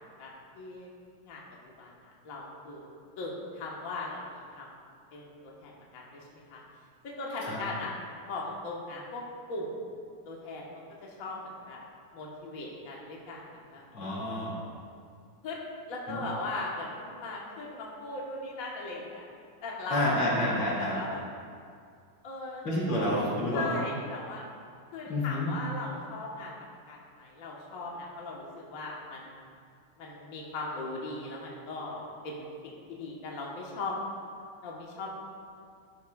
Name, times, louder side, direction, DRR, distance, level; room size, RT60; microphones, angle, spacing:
voice 1, 0.0-1.4 1.8-4.7 5.1-6.6 7.0-7.9 8.3-9.2 9.5-9.7 10.2-10.7 11.0-11.8 12.1-13.8 15.4-15.6 15.9-19.3 19.6-21.2 22.2-22.6 23.5-24.4 24.9-26.5 26.9-29.4 30.0-33.9 34.6-35.1, left 2 dB, 45° left, -3 dB, 1.4 m, -39 dB
voice 2, 13.9-14.6 16.1-16.2 19.9-21.0 22.6-23.8 25.1-25.5, left 1 dB, 85° left, -6 dB, 3.3 m, -29 dB
11.5 x 11.0 x 2.3 m, 2.3 s
omnidirectional pair, 2.4 m